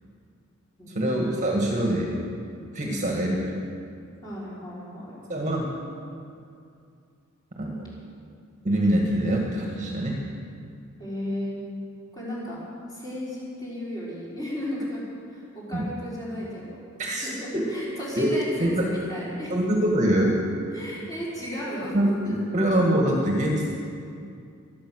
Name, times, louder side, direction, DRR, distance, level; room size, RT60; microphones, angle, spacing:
voice 1, 1.0-2.1 2.7-3.5 5.3-5.7 7.6-7.8 8.6-10.2 15.7-15.9 17.0-17.7 18.2-18.3 18.6-18.9 19.5-20.4 21.9-23.7, right 1 dB, 35° right, -1 dB, 1.8 m, -24 dB
voice 2, 4.2-5.2 11.0-11.6 12.1-12.6 12.9-15.0 15.3-16.8 17.2-19.5 20.7-22.0 22.2-22.3, equal, 20° left, -8 dB, 4.8 m, -34 dB
24.5 x 8.6 x 6.4 m, 2.4 s
head